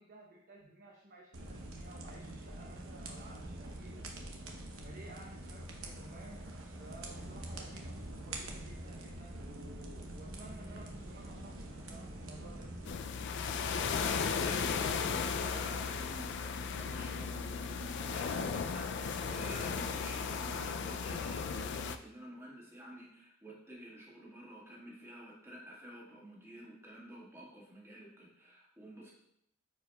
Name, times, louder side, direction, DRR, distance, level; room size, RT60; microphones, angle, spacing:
voice 1, 0.0-4.1 4.8-6.5 6.8-12.8, right 2 dB, 45° right, -3 dB, 0.9 m, -54 dB
sound 1, 1.3-12.9, right 1 dB, 70° right, 1.0 m, -45 dB
sound 2, 10.3-16.7, equal, 40° left, 1.3 m, -56 dB
sound 3, 12.9-22.0, left 5 dB, 55° left, 0.4 m, -35 dB
voice 2, 14.4-29.1, right 1 dB, 15° right, -5 dB, 1.7 m, -50 dB
9.6 x 4.7 x 2.3 m, 0.73 s
head